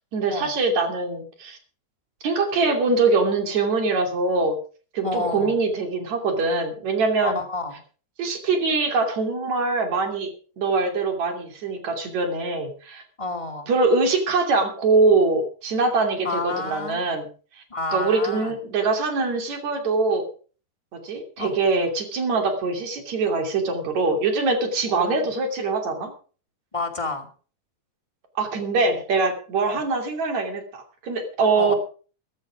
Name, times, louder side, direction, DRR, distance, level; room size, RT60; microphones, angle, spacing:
voice 1, 0.1-1.6 2.2-4.6 4.9-7.4 8.2-10.3 10.6-13.0 13.7-17.3 17.9-20.3 20.9-26.1 28.4-31.8, right 3 dB, 65° right, 5 dB, 4.1 m, -23 dB
voice 2, 5.0-5.6 7.2-7.8 13.2-13.7 16.2-17.0 17.7-18.5 21.4-21.6 24.9-25.3 26.7-27.3 28.9-29.0 29.7-29.8 31.5-31.7, left 2 dB, 10° left, 3 dB, 2.1 m, -30 dB
14.5 x 13.0 x 4.9 m, 0.39 s
omnidirectional pair, 3.6 m